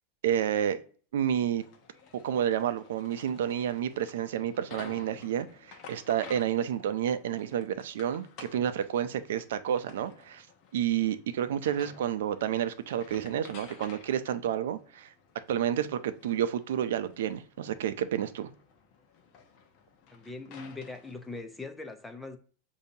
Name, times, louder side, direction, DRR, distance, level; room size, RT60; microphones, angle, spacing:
voice 1, 0.2-0.8 1.1-1.6 2.2-10.5 10.7-15.1 15.5-18.5, right 10 dB, 80° right, 0.4 m, -30 dB
sound 1, 1.6-21.4, left 6 dB, 40° left, 0.8 m, -53 dB
voice 2, 20.1-22.4, left 3 dB, 5° left, 0.4 m, -41 dB
6.6 x 2.7 x 2.7 m
supercardioid pair, 165°, 0 cm